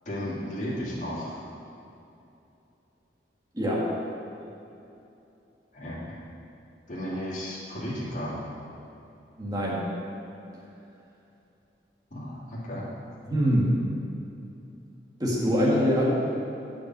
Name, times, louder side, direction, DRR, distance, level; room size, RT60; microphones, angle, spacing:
voice 1, 0.1-1.5 5.7-6.2 6.9-8.4 12.1-12.8, equal, 40° left, -9 dB, 2.5 m, -34 dB
voice 2, 3.5-3.9 9.4-9.9 13.3-13.7 15.2-16.1, equal, 20° right, -5 dB, 2.0 m, -24 dB
8.5 x 6.2 x 7.5 m, 2.8 s
head